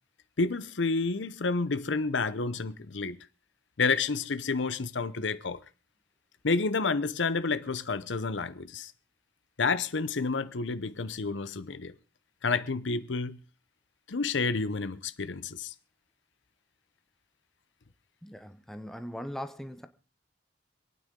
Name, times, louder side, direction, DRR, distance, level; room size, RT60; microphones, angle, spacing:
voice 1, 0.4-3.2 3.8-5.6 6.4-8.9 9.6-11.9 12.4-13.4 14.1-15.7, left 4 dB, 70° left, 0.8 m, -30 dB
voice 2, 18.2-19.9, equal, ahead, 0.9 m, -40 dB
26.5 x 9.2 x 3.8 m
head